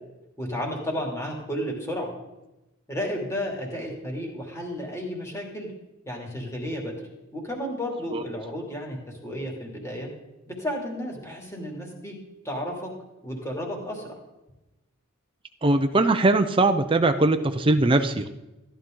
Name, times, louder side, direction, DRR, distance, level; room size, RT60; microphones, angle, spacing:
voice 1, 0.4-2.2 2.9-5.7 6.0-6.9 7.3-9.0 9.2-10.1 10.5-12.1 12.4-12.9 13.2-14.2, equal, 15° left, 0 dB, 2.7 m, -32 dB
voice 2, 15.6-18.3, right 2 dB, 25° right, 7 dB, 0.6 m, -21 dB
14.5 x 11.0 x 3.8 m, 0.99 s
head